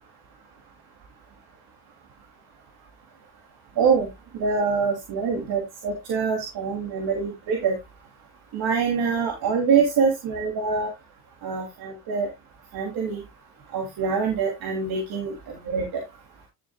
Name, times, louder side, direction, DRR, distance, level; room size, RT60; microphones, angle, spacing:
voice 1, 4.3-7.8 8.5-10.9 11.4-12.3 12.7-13.2 13.7-15.8, right 5 dB, 60° right, 1 dB, 3.1 m, -25 dB
12.0 x 7.2 x 2.4 m, 0.20 s
supercardioid pair, 70°, 40 cm